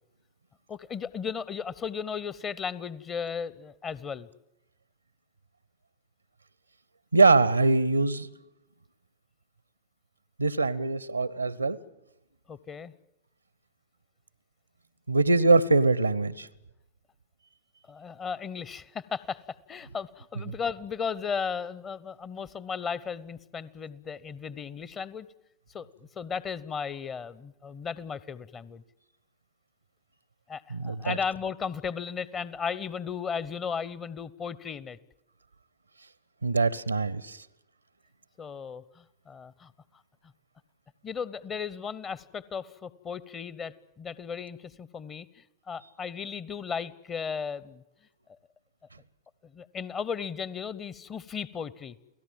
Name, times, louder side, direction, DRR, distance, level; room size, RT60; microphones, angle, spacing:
voice 1, 0.7-4.3 12.5-12.9 17.9-19.4 19.7-25.3 25.7-28.8 30.5-35.0 38.4-39.7 41.0-47.8 49.4-51.9, left 6 dB, 25° left, 20 dB, 0.9 m, -35 dB
voice 2, 7.1-8.3 10.4-11.8 15.1-16.5 20.5-20.6 30.7-31.2 36.4-37.4, right 3 dB, 85° right, 22 dB, 0.8 m, -23 dB
29.0 x 18.0 x 7.5 m, 0.90 s
figure-of-eight pair, 90°, 0 cm